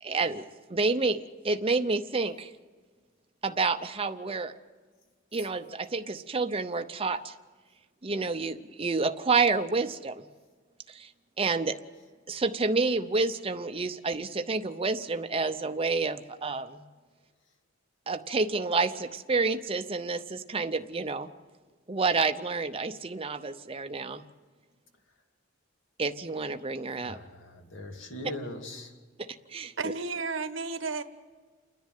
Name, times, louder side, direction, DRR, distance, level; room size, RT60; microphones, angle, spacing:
voice 1, 0.0-2.5 3.4-4.5 5.3-7.3 8.0-10.3 10.9-11.1 11.4-11.8 12.3-16.8 18.1-21.3 21.9-24.2 26.0-27.2 29.2-29.7, right 4 dB, 30° right, 7 dB, 0.7 m, -29 dB
voice 2, 27.0-28.9, left 1 dB, 70° left, 3 dB, 2.6 m, -40 dB
voice 3, 29.8-31.0, right 4 dB, 75° right, 10 dB, 1.2 m, -32 dB
29.0 x 10.5 x 9.3 m, 1.4 s
head